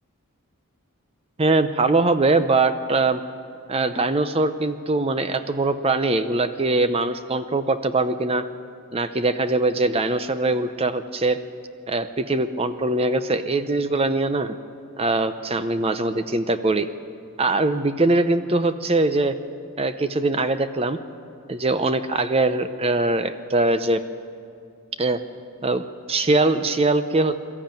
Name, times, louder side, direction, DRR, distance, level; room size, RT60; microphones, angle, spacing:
voice 1, 1.4-3.2 3.7-8.5 8.9-11.4 11.9-14.6 15.0-16.9 17.4-19.3 19.8-21.0 21.5-24.0 25.0-25.2 25.6-25.8 26.1-27.4, right 2 dB, 25° right, 11 dB, 0.7 m, -22 dB
22.0 x 13.5 x 9.0 m, 2.4 s
head